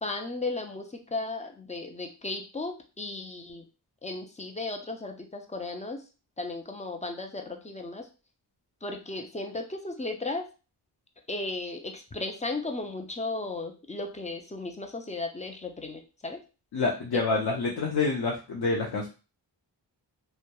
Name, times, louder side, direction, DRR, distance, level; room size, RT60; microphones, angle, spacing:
voice 1, 0.0-3.6 4.0-6.0 6.4-8.1 8.8-10.5 11.3-16.4, left 2 dB, 20° left, 4 dB, 0.4 m, -35 dB
voice 2, 16.7-19.1, left 3 dB, 65° left, -2 dB, 0.6 m, -27 dB
2.8 x 2.1 x 2.2 m, 0.32 s
wide cardioid pair, 80°, 43 cm